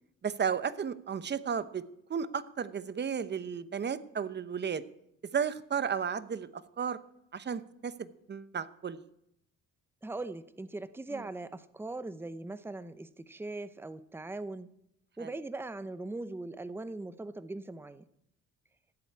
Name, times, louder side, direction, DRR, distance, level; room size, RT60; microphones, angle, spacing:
voice 1, 0.2-1.8 2.1-4.8 5.3-6.5 6.8-7.0 7.3-9.0 15.2-15.3, right 7 dB, 35° right, 14 dB, 0.9 m, -33 dB
voice 2, 10.0-14.7 15.2-18.0, right 2 dB, 5° right, 13 dB, 0.8 m, -40 dB
15.5 x 8.1 x 8.7 m, 0.79 s
cardioid pair, 90°, 30 cm